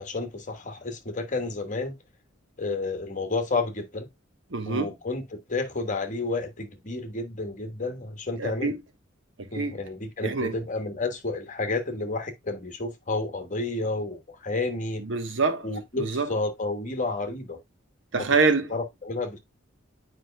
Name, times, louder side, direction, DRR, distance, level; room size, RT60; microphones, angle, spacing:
voice 1, 0.0-2.0 2.6-4.1 4.6-8.7 9.5-15.0 15.6-17.6 18.1-18.3 18.7-19.4, left 3 dB, 40° left, 1.3 m, -31 dB
voice 2, 4.5-4.9 8.4-8.8 9.4-9.8 10.2-10.5 15.0-15.7 16.0-16.3 18.1-18.7, right 4 dB, 70° right, 1.1 m, -25 dB
9.4 x 4.9 x 2.2 m
head